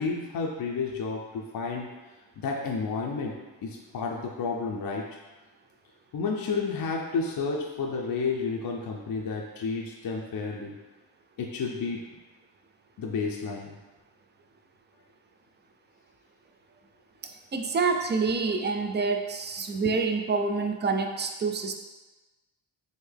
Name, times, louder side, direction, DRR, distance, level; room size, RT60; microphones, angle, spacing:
voice 1, 0.0-1.9 2.4-3.4 3.6-5.1 6.1-10.8 11.4-12.0 13.0-13.7 19.8-19.9, left 4 dB, 45° left, 0 dB, 0.5 m, -31 dB
voice 2, 17.5-21.7, right 4 dB, 25° right, 5 dB, 0.3 m, -27 dB
3.7 x 2.1 x 3.4 m, 1.2 s
supercardioid pair, 45°, 49 cm